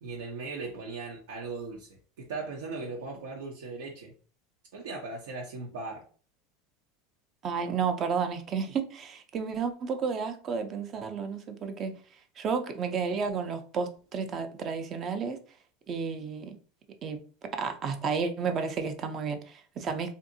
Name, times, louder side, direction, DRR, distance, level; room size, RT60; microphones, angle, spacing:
voice 1, 0.0-4.1 4.7-6.0, right 3 dB, 90° right, 0.7 m, -38 dB
voice 2, 7.4-12.0 12.4-15.4 15.9-16.6 17.0-20.1, right 5 dB, 35° right, 0.5 m, -32 dB
2.7 x 2.5 x 2.6 m
supercardioid pair, 125°, 0 cm